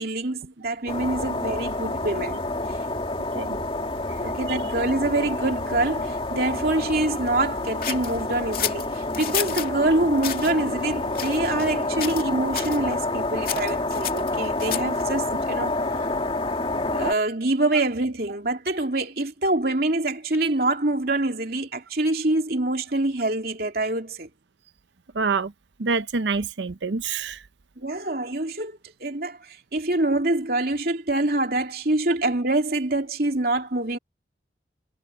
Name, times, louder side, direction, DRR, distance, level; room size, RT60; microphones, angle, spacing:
voice 1, 0.0-2.4 4.2-15.7 16.9-24.3 27.8-34.0, right 2 dB, 55° right, 3.1 m, -25 dB
sound 1, 0.9-17.1, left 2 dB, 30° left, 2.4 m, -28 dB
sound 2, 7.8-9.7 10.2-10.5 11.1-11.7 12.0-12.3 12.5-12.8 13.4-15.0, left 11 dB, 50° left, 2.7 m, -31 dB
voice 2, 25.1-25.5 25.8-27.4, right 4 dB, 75° right, 0.7 m, -26 dB
head